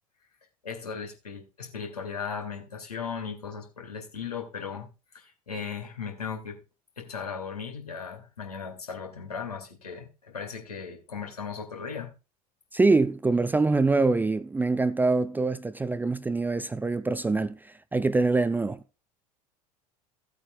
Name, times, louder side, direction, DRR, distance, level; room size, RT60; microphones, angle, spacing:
voice 1, 0.6-4.9 5.1-6.6 7.0-12.1, left 6 dB, 75° left, 2.3 m, -37 dB
voice 2, 12.7-18.8, right 3 dB, 10° right, 0.4 m, -24 dB
16.0 x 8.2 x 2.4 m
figure-of-eight pair, 70°, 19 cm